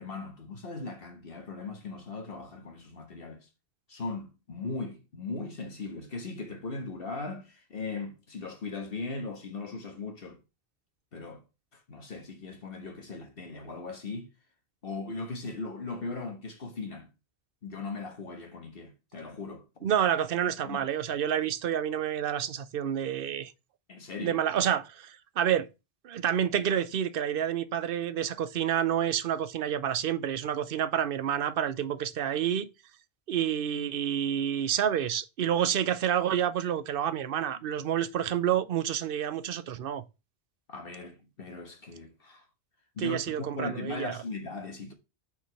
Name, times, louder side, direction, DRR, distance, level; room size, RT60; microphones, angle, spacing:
voice 1, 0.0-3.5 3.9-10.4 11.1-11.4 11.7-14.3 14.8-17.1 17.6-20.0 20.6-20.8 23.9-24.4 40.7-42.5 42.9-44.9, left 3 dB, 60° left, 1.5 m, -38 dB
voice 2, 19.8-23.5 24.2-25.7 26.0-32.7 33.3-40.0 43.0-44.2, right 9 dB, 60° right, 0.8 m, -29 dB
5.8 x 4.9 x 5.6 m
omnidirectional pair, 1.1 m